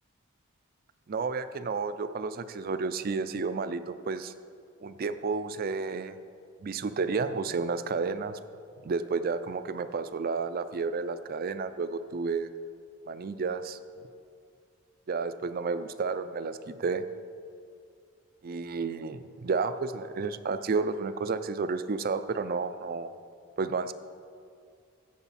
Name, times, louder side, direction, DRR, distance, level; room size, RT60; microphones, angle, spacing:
voice 1, 1.1-4.3 4.8-6.2 6.6-8.4 8.8-12.5 13.1-13.8 15.1-17.0 18.4-23.1 23.6-23.9, right 4 dB, 40° right, 12 dB, 0.4 m, -31 dB
14.5 x 8.0 x 4.2 m, 2.3 s
head